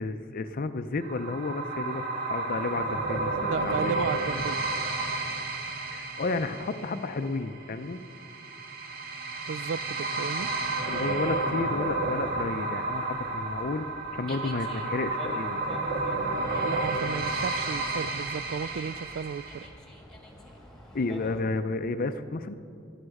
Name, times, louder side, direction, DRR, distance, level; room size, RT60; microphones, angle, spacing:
voice 1, 0.0-2.0 2.3-3.9 5.9-8.0 10.9-13.9 14.1-15.8 20.9-22.5, left 3 dB, 45° left, 9 dB, 0.5 m, -32 dB
sound 1, 1.0-19.7, right 2 dB, 50° right, 1.5 m, -32 dB
voice 2, 3.4-4.6 9.5-10.5 16.5-19.6, right 6 dB, 70° right, 19 dB, 0.4 m, -34 dB
Dog, 12.9-21.4, equal, 5° left, 1.6 m, -48 dB
14.5 x 11.0 x 6.5 m, 2.5 s
head